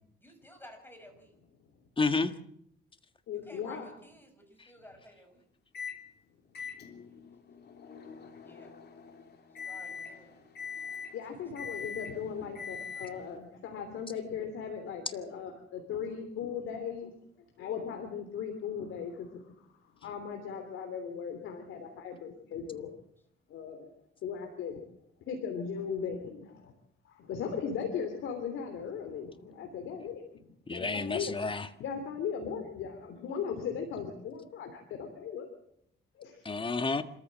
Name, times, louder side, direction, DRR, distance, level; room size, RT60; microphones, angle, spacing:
voice 1, 0.2-1.3 3.3-5.5 8.4-8.7 9.7-10.4 11.5-11.8 12.1-12.5, equal, 10° left, 6 dB, 6.2 m, -54 dB
voice 2, 2.0-2.3 30.7-31.7 36.5-37.0, left 3 dB, 25° left, 10 dB, 1.7 m, -30 dB
voice 3, 3.3-3.9 11.1-17.1 17.6-19.7 20.0-22.9 23.5-23.9 24.2-24.8 25.3-26.7 27.0-30.2 30.7-31.4 31.8-35.5 36.2-36.5, left 7 dB, 80° left, 4 dB, 3.2 m, -38 dB
Microwave oven, 5.7-6.0 6.5-13.4, left 6 dB, 55° left, 3.3 m, -43 dB
26.0 x 14.0 x 7.6 m, 0.73 s
cardioid pair, 90°, 20 cm